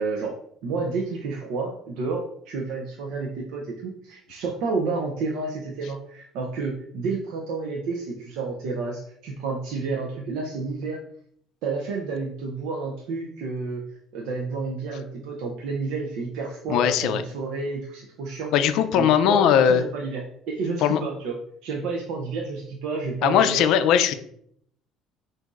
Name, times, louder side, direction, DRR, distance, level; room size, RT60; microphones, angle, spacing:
voice 1, 0.0-11.0 11.6-13.8 14.1-21.3 21.6-23.7, right 4 dB, 75° right, 0 dB, 0.6 m, -30 dB
voice 2, 16.7-17.2 18.5-19.8 20.8-21.0 23.2-24.1, left 9 dB, 70° left, 10 dB, 0.4 m, -19 dB
5.8 x 2.6 x 2.5 m, 0.67 s
supercardioid pair, 85°, 0 cm